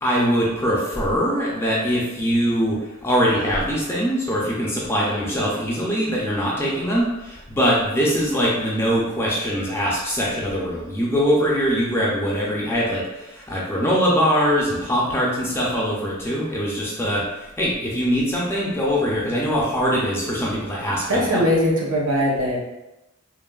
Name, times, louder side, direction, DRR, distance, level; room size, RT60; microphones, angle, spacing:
voice 1, 0.0-21.4, equal, 10° left, -5 dB, 0.4 m, -22 dB
voice 2, 21.1-22.6, equal, 65° right, -3 dB, 0.7 m, -20 dB
3.1 x 2.1 x 2.2 m, 0.96 s
head